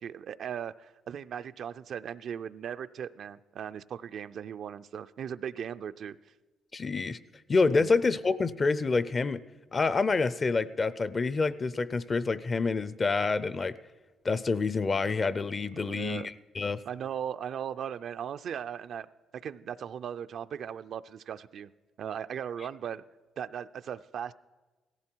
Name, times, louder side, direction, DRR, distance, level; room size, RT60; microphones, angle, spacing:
voice 1, 0.0-6.2 7.8-7.9 15.8-16.3 16.8-19.1 19.4-21.7 22.0-23.0 23.4-24.3, right 8 dB, 65° right, 11 dB, 0.4 m, -38 dB
voice 2, 6.7-7.2 7.5-9.4 9.7-13.8 14.2-16.8, left 4 dB, 35° left, 17 dB, 0.5 m, -27 dB
17.0 x 15.0 x 4.5 m, 1.2 s
cardioid pair, 90°, 0 cm